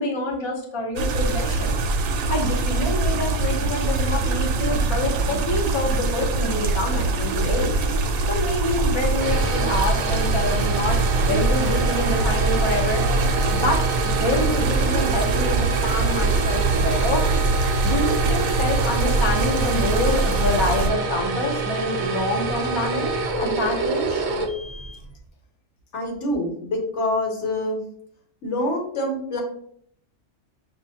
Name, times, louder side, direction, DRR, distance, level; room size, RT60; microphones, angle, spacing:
voice 1, 0.0-1.8 2.3-7.7 8.3-13.0 13.5-17.2 17.8-24.3, left 2 dB, 30° left, 0 dB, 0.6 m, -27 dB
sound 1, 1.0-20.9, right 3 dB, 80° right, 1.0 m, -23 dB
sound 2, 8.9-25.1, right 3 dB, 60° right, 0.5 m, -27 dB
voice 2, 25.9-27.8 28.4-29.4, left 1 dB, 65° left, 1 dB, 1.2 m, -26 dB
6.0 x 2.2 x 2.7 m, 0.64 s
omnidirectional pair, 1.4 m